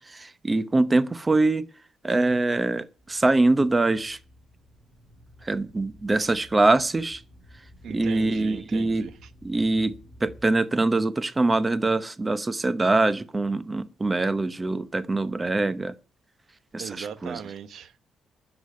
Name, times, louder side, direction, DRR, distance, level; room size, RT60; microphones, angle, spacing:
voice 1, 0.1-1.7 2.0-4.2 5.4-7.2 7.9-9.1 9.4-9.9 10.2-15.9 16.7-17.4, right 2 dB, 20° right, 0.8 m, -23 dB
sound 1, 3.0-10.4, equal, ahead, 7.2 m, -52 dB
voice 2, 7.8-9.3 16.8-18.0, right 8 dB, 70° right, 1.0 m, -38 dB
10.0 x 7.1 x 9.4 m
cardioid pair, 90°, 0 cm